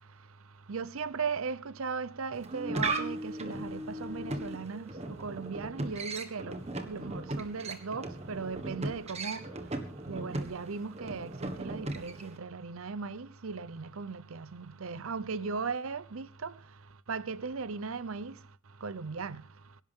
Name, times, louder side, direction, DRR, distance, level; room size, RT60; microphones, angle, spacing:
voice 1, 0.7-4.8 5.2-6.6 6.8-9.4 10.1-16.5 17.1-18.3 18.8-19.4, right 5 dB, 75° right, 0.7 m, -37 dB
sound 1, 2.3-12.4, right 2 dB, 30° right, 1.6 m, -37 dB
25.0 x 11.0 x 3.7 m
head